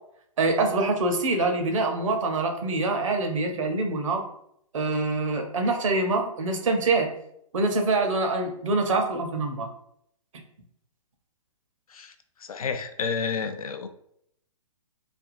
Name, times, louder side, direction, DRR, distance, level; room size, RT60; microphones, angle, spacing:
voice 1, 0.4-4.2 4.7-7.1 7.5-9.7, right 3 dB, 60° right, 4 dB, 0.7 m, -25 dB
voice 2, 12.5-13.9, left 5 dB, 80° left, 9 dB, 0.4 m, -30 dB
3.3 x 2.3 x 2.5 m, 0.71 s
figure-of-eight pair, 125°, 18 cm